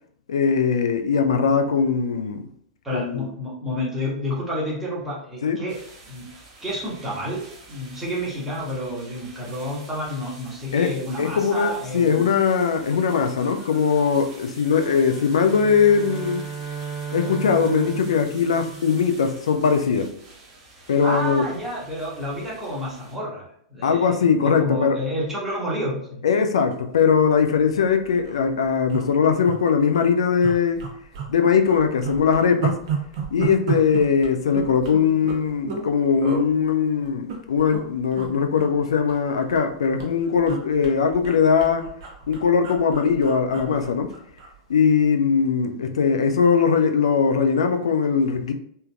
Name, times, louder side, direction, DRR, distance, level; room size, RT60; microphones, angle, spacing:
voice 1, 0.3-2.4 2.9-3.3 5.4-5.6 10.7-10.9 11.2-16.5 17.1-20.1 20.9-21.5 23.8-25.0 26.2-30.9 31.3-32.8 33.3-41.8 42.3-44.1 44.7-48.5, left 6 dB, 65° left, 0.4 m, -20 dB
voice 2, 2.8-5.8 6.1-6.3 6.6-12.3 21.0-23.4 23.7-26.2 45.6-45.9, left 1 dB, 10° right, 1.2 m, -30 dB
sound 1, 5.7-23.2, right 2 dB, 35° right, 1.2 m, -47 dB
sound 2, 14.6-19.3, right 6 dB, 85° left, 1.2 m, -35 dB
sound 3, 27.4-27.6 27.9-28.0 28.2-28.4 28.9-29.6 29.9-30.1 30.4-31.3 31.6-35.9 36.2-36.4 37.0-37.8 38.1-38.3 38.6-39.7 40.0-44.5 44.9-45.1, right 6 dB, 50° right, 0.7 m, -32 dB
3.5 x 2.8 x 2.3 m
figure-of-eight pair, 95°, 3 cm